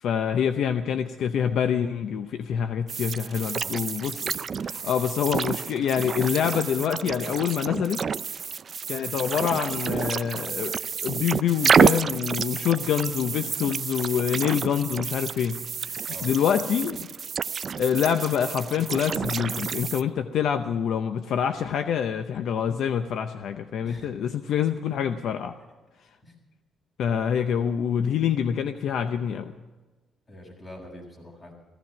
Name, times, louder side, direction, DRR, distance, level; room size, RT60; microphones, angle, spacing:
voice 1, 0.0-8.0 8.9-15.6 15.9-17.1 17.8-25.6 27.0-29.5, left 8 dB, 75° left, 9 dB, 0.7 m, -26 dB
sound 1, 2.9-20.0, right 6 dB, 45° right, 0.4 m, -29 dB
voice 2, 30.3-31.5, equal, 30° left, 1 dB, 6.9 m, -43 dB
16.0 x 15.0 x 5.9 m, 1.2 s
cardioid pair, 90°, 0 cm